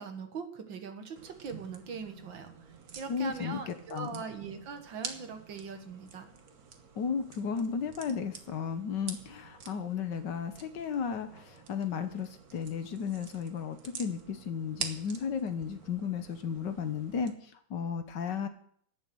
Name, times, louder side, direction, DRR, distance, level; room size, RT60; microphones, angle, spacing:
voice 1, 0.0-2.5 3.0-6.3, right 5 dB, 75° right, 6 dB, 2.2 m, -41 dB
sound 1, 1.2-17.3, right 6 dB, 50° right, 1.6 m, -47 dB
voice 2, 3.1-4.2 7.0-17.3 17.7-18.5, left 6 dB, 65° left, 9 dB, 1.7 m, -34 dB
13.0 x 7.2 x 7.8 m, 0.62 s
omnidirectional pair, 2.1 m